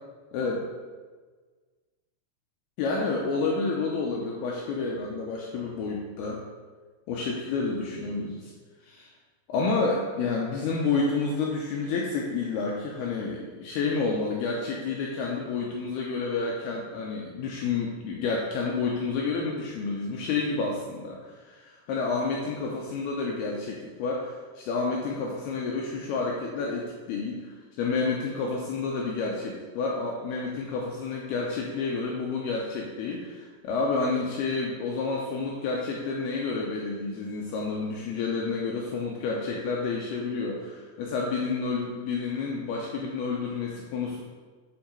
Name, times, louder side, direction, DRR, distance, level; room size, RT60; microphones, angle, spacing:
voice 1, 0.3-0.7 2.8-6.4 7.1-8.5 8.9-9.1 9.5-21.2 21.4-27.5 27.8-44.2, left 4 dB, 90° left, -1 dB, 2.3 m, -29 dB
9.0 x 4.6 x 4.4 m, 1.5 s
omnidirectional pair, 5.3 m